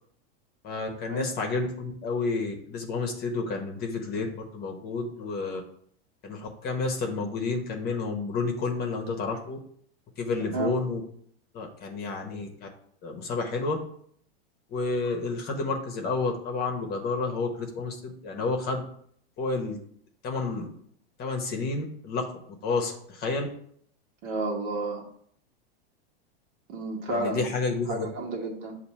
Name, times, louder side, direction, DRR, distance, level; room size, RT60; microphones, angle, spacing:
voice 1, 0.6-5.6 6.2-9.6 10.2-11.0 11.5-12.7 13.0-13.8 14.7-18.8 19.4-19.8 20.2-20.7 21.2-22.3 22.6-23.5 27.1-28.0, left 3 dB, 30° left, 3 dB, 1.0 m, -30 dB
voice 2, 10.4-10.7 24.2-25.0 26.7-27.4 27.9-28.8, right 2 dB, 55° right, 0 dB, 1.5 m, -31 dB
6.9 x 2.7 x 5.4 m, 0.64 s
supercardioid pair, 135°, 31 cm